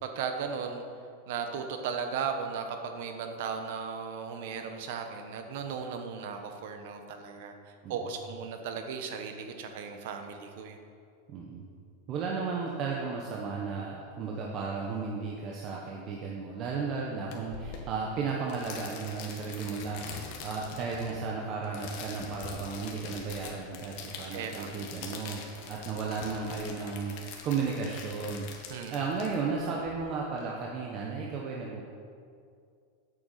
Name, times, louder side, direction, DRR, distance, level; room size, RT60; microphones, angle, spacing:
voice 1, 0.0-0.8 1.3-7.5 7.9-10.8 24.3-24.7 28.7-29.1, right 6 dB, 65° right, 5 dB, 1.2 m, -36 dB
voice 2, 11.3-11.7 12.1-31.8, right 5 dB, 35° right, -2 dB, 1.1 m, -34 dB
sound 1, 17.3-29.9, left 5 dB, 50° left, 1.6 m, -44 dB
8.9 x 7.0 x 6.8 m, 2.3 s
supercardioid pair, 150°, 0 cm